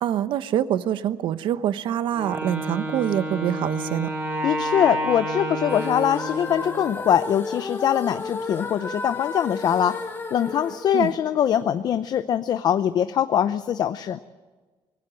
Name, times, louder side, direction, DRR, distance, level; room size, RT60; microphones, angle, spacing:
voice 1, 0.0-4.1 10.9-11.1, right 11 dB, 65° right, 13 dB, 1.0 m, -25 dB
Wind instrument woodwind instrument, 2.1-7.0, right 1 dB, 20° right, 6.0 m, -30 dB
voice 2, 4.4-10.0 10.3-14.2, left 9 dB, 50° left, 12 dB, 0.6 m, -23 dB
sound 1, 5.6-11.8, left 3 dB, 25° left, 1.8 m, -33 dB
24.5 x 17.0 x 7.6 m, 1.3 s
cardioid pair, 145°, 9 cm